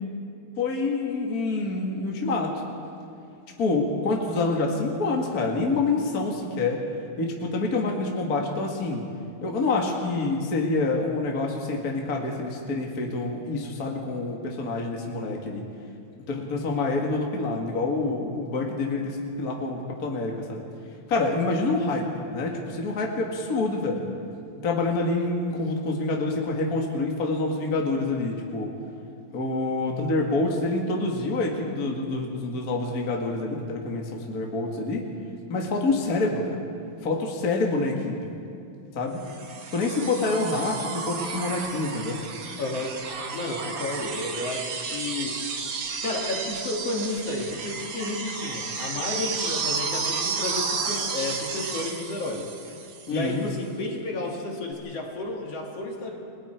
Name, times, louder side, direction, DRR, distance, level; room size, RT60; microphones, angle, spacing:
voice 1, 0.6-2.6 3.6-6.8 7.2-9.1 9.4-15.7 16.3-20.6 21.1-24.0 24.6-28.7 29.3-35.0 35.5-36.6 37.0-38.3 38.9-39.2 39.7-42.2 53.1-53.5, left 3 dB, 35° left, 0 dB, 2.2 m, -27 dB
sound 1, 39.2-53.3 54.7-54.8, right 5 dB, 50° right, 2.3 m, -32 dB
voice 2, 42.6-43.0 43.3-45.6 46.0-52.5 53.1-56.2, left 2 dB, 55° left, 0 dB, 2.9 m, -32 dB
30.0 x 20.0 x 4.5 m, 2.5 s
omnidirectional pair, 3.4 m